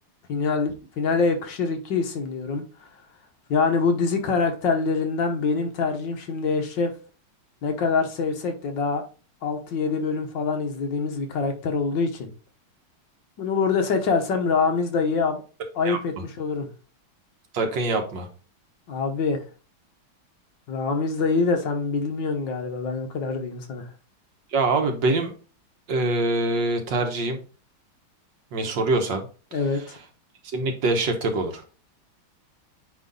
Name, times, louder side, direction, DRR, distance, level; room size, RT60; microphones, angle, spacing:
voice 1, 0.3-2.9 3.5-6.9 7.6-9.0 9.4-12.3 13.4-15.4 15.8-16.7 18.9-19.4 20.7-23.9 29.5-30.0, left 4 dB, 60° left, 1.7 m, -25 dB
voice 2, 17.5-18.3 24.5-25.3 25.9-27.4 28.5-29.2 30.5-31.6, right 2 dB, 65° right, 1.7 m, -24 dB
9.2 x 3.2 x 3.9 m
omnidirectional pair, 2.3 m